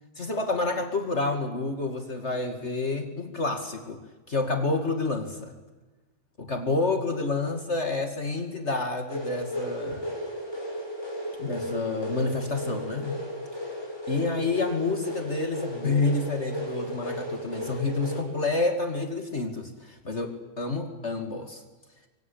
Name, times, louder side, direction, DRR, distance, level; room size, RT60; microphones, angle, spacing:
voice 1, 0.2-4.0 4.3-5.5 6.4-10.1 11.4-13.2 14.1-21.6, left 3 dB, 50° left, 5 dB, 2.7 m, -29 dB
sound 1, 9.1-18.2, equal, 15° left, 7.0 m, -35 dB
26.0 x 24.0 x 8.7 m, 1.2 s
omnidirectional pair, 1.6 m